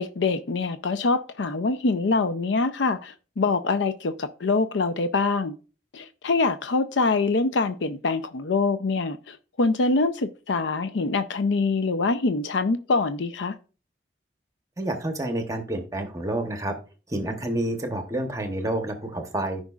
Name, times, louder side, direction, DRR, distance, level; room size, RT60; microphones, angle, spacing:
voice 1, 0.0-5.5 5.9-13.5, left 3 dB, 85° left, 0.5 m, -24 dB
voice 2, 14.8-16.7 17.1-19.6, right 1 dB, 20° right, 0.9 m, -29 dB
14.0 x 5.2 x 2.4 m
head